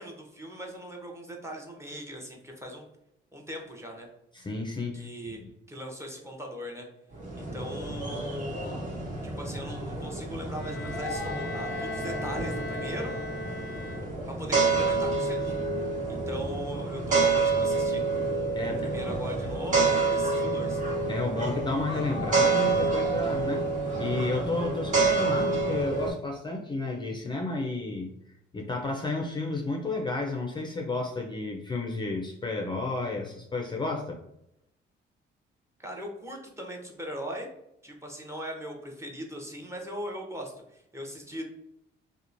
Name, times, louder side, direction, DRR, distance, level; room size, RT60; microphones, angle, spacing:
voice 1, 0.0-2.9 3.3-4.1 4.9-5.4 5.7-6.9 7.4-8.9 9.2-13.1 14.3-15.7 16.1-18.0 18.6-20.8 35.8-37.5 37.8-41.4, equal, 15° right, 0 dB, 0.7 m, -39 dB
voice 2, 4.3-5.3 18.6-18.9 21.1-23.7 24.0-28.1 28.5-34.2, left 3 dB, 25° left, 1 dB, 0.4 m, -32 dB
sound 1, 7.1-26.1, right 3 dB, 40° right, 1.1 m, -28 dB
Bowed string instrument, 10.5-14.5, left 2 dB, 85° left, 0.4 m, -38 dB
2.9 x 2.1 x 2.5 m, 0.81 s
cardioid pair, 90°, 20 cm